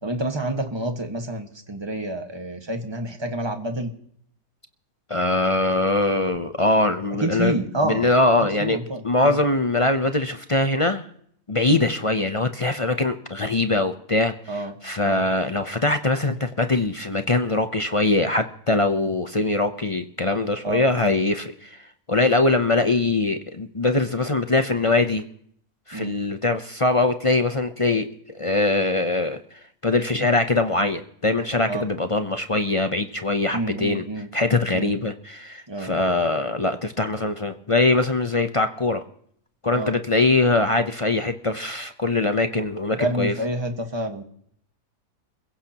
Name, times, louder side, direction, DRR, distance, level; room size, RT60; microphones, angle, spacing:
voice 1, 0.0-3.9 7.2-8.1 8.6-9.3 11.7-11.8 14.5-14.7 15.1-15.2 20.6-20.8 25.9-26.1 31.7-31.8 33.5-34.3 34.7-34.9 35.7-35.9 39.7-39.9 43.0-44.2, right 1 dB, 15° right, 5 dB, 1.5 m, -28 dB
voice 2, 5.1-7.5 7.8-8.8 9.0-11.0 11.5-25.2 25.9-34.0 34.3-39.0 39.6-43.3, left 2 dB, 40° left, 8 dB, 0.4 m, -22 dB
28.5 x 16.0 x 2.9 m, 0.66 s
omnidirectional pair, 1.7 m